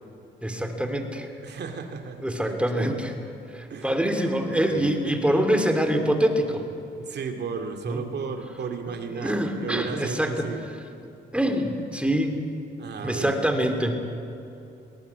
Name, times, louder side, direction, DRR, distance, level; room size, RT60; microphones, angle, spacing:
voice 1, 0.4-1.3 2.2-3.2 3.5-6.7 7.9-8.0 8.9-10.5 11.3-12.4 13.0-14.0, equal, 5° right, 5 dB, 2.9 m, -25 dB
voice 2, 1.4-3.0 3.7-3.9 4.5-5.1 7.0-10.6 12.8-13.4, right 5 dB, 60° right, 5 dB, 2.6 m, -34 dB
22.0 x 18.5 x 8.3 m, 2.9 s
cardioid pair, 90°, 20 cm